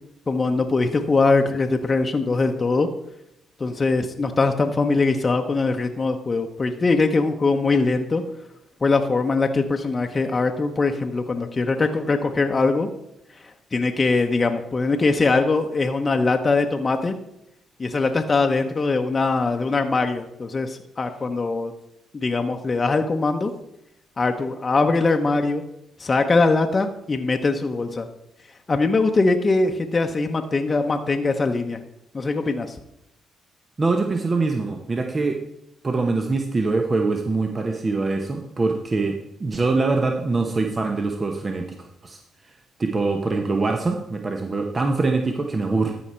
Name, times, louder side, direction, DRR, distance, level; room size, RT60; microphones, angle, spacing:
voice 1, 0.3-2.9 3.6-8.2 8.8-12.9 13.7-17.2 17.8-21.7 22.1-23.5 24.2-25.6 26.0-28.1 28.7-31.8 32.1-32.8, left 3 dB, 35° left, 4 dB, 0.8 m, -22 dB
voice 2, 33.8-35.4 35.8-41.7 42.0-42.2 42.8-45.9, right 3 dB, 35° right, 3 dB, 1.0 m, -23 dB
13.5 x 4.8 x 4.4 m, 0.82 s
supercardioid pair, 55°, 0 cm